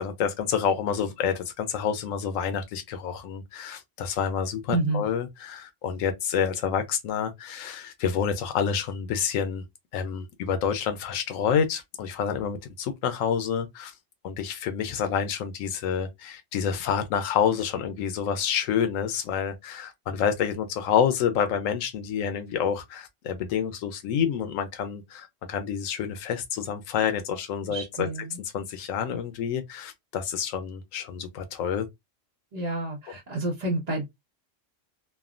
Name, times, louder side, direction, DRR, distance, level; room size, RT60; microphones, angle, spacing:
voice 1, 0.0-9.6 9.9-13.9 14.2-28.1 28.5-31.9, left 7 dB, 90° left, 1.0 m, -28 dB
voice 2, 4.7-5.0 27.7-28.4 32.5-34.1, right 2 dB, 40° right, 0.7 m, -29 dB
3.2 x 2.1 x 2.4 m
omnidirectional pair, 1.3 m